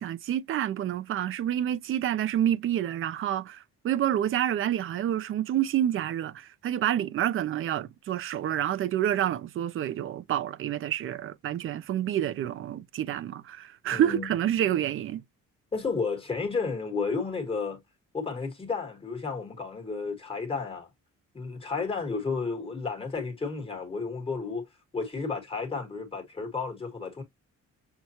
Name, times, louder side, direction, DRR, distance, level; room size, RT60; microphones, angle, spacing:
voice 1, 0.0-15.2, right 11 dB, 45° right, 0.4 m, -28 dB
voice 2, 13.9-14.3 15.7-17.8 18.1-20.9 21.3-24.6 24.9-27.2, left 4 dB, 20° left, 1.3 m, -32 dB
6.3 x 2.2 x 2.7 m
cardioid pair, 160°, 30 cm